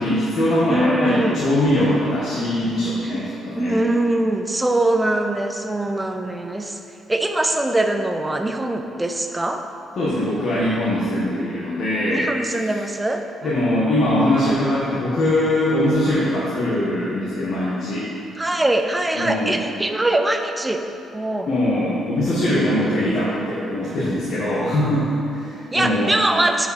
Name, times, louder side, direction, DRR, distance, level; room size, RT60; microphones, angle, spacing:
voice 1, 0.0-3.8 10.0-12.6 13.4-18.1 19.2-19.5 21.5-26.1, left 1 dB, 60° left, -9 dB, 1.5 m, -21 dB
voice 2, 0.7-1.4 3.6-6.8 7.1-9.6 12.1-13.2 13.9-14.6 18.4-20.8 21.1-21.5 25.7-26.7, right 1 dB, 15° right, 5 dB, 0.6 m, -22 dB
9.2 x 5.1 x 4.2 m, 2.6 s
cardioid pair, 90°, 0 cm